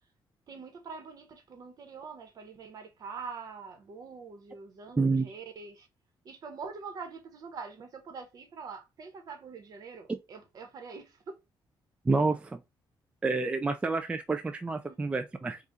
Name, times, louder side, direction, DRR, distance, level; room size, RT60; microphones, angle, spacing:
voice 1, 0.5-5.9 6.2-11.4 14.9-15.0, right 5 dB, 50° right, 1.1 m, -44 dB
voice 2, 5.0-5.3 10.1-10.2 12.1-12.6 13.2-15.6, right 3 dB, 15° right, 0.3 m, -28 dB
4.0 x 2.4 x 3.6 m
cardioid pair, 145°, 8 cm